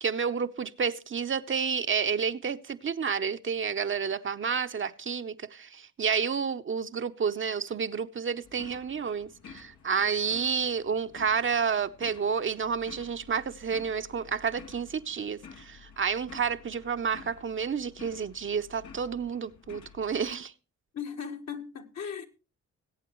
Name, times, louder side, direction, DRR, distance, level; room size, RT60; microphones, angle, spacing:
voice 1, 0.0-20.5, right 6 dB, 40° right, 0.7 m, -30 dB
sound 1, 8.4-20.3, left 6 dB, 85° left, 1.3 m, -51 dB
voice 2, 20.9-22.3, left 7 dB, 60° left, 1.5 m, -37 dB
21.0 x 8.4 x 3.1 m
supercardioid pair, 55°, 30 cm